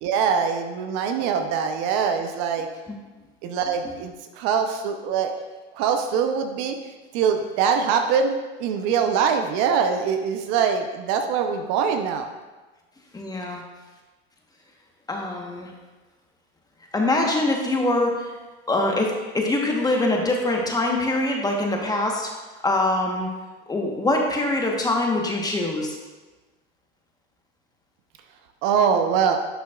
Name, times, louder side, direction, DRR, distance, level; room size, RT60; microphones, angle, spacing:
voice 1, 0.0-2.7 3.4-5.3 5.7-6.8 7.1-8.3 8.6-12.3 28.6-29.4, right 6 dB, 50° right, 6 dB, 0.8 m, -23 dB
voice 2, 13.1-13.6 15.1-15.7 16.9-18.4 18.7-22.3 22.6-23.3 23.7-26.0, left 2 dB, 10° left, 0 dB, 1.2 m, -23 dB
11.0 x 5.9 x 2.4 m, 1.2 s
hypercardioid pair, 110°, 32 cm